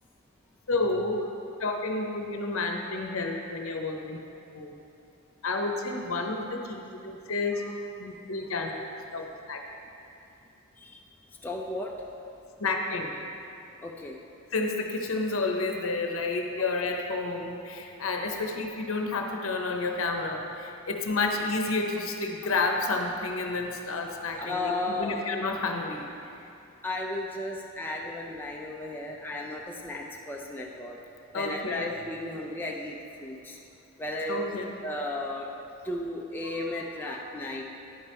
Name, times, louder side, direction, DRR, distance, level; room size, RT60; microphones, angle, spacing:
voice 1, 0.7-1.2 1.6-4.2 4.5-4.7 5.4-7.6 8.0-8.7 9.1-9.6 12.6-13.1 14.5-24.7 25.0-26.1 31.3-31.9 34.3-34.7 36.6-37.3, left 3 dB, 70° left, 3 dB, 0.7 m, -30 dB
voice 2, 11.4-11.9 13.8-14.2 24.4-25.3 26.8-31.0 31.3-33.6 34.0-34.4 34.8-35.5 35.8-37.6, left 2 dB, 10° left, -2 dB, 0.4 m, -34 dB
10.5 x 5.2 x 4.3 m, 2.7 s
head